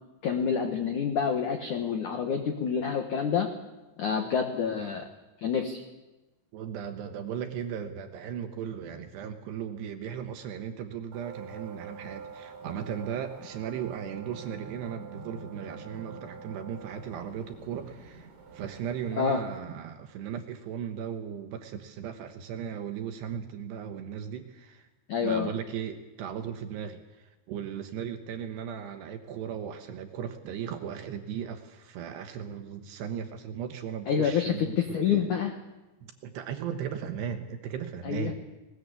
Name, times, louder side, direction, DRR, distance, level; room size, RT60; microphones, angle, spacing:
voice 1, 0.2-3.5 4.0-5.0 5.4-5.8 19.1-19.4 25.1-25.5 34.1-35.5 38.0-38.3, left 7 dB, 75° left, 5 dB, 1.8 m, -27 dB
voice 2, 4.8-5.1 6.5-24.9 25.2-35.2 36.2-38.3, right 8 dB, 70° right, 6 dB, 2.9 m, -37 dB
sound 1, 11.1-19.6, right 5 dB, 45° right, 3.5 m, -46 dB
20.5 x 20.0 x 8.2 m, 1.1 s
omnidirectional pair, 5.8 m